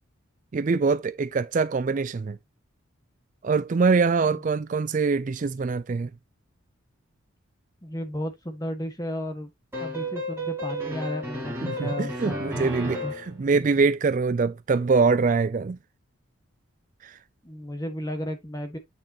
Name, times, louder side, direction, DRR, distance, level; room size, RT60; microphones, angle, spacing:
voice 1, 0.5-2.4 3.4-6.1 11.6-13.0 13.3-15.8 17.0-17.1, right 4 dB, 35° right, 0.3 m, -24 dB
voice 2, 7.8-9.5 9.8-13.1 17.4-18.8, equal, 15° left, 1.7 m, -34 dB
sound 1, 9.7-13.3, equal, 10° right, 3.1 m, -33 dB
8.8 x 5.5 x 3.0 m
head